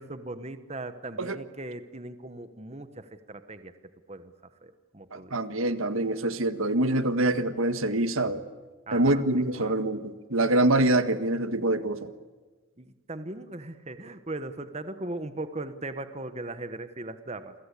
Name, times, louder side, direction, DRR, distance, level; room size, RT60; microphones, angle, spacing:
voice 1, 0.0-3.7 4.1-4.3 4.6-5.4 8.9-9.2 9.6-9.7 12.8-17.5, right 2 dB, 30° right, 10 dB, 1.3 m, -38 dB
voice 2, 5.1-8.4 8.9-12.1, right 2 dB, 75° right, 11 dB, 1.8 m, -25 dB
29.0 x 23.0 x 8.5 m, 1.3 s
head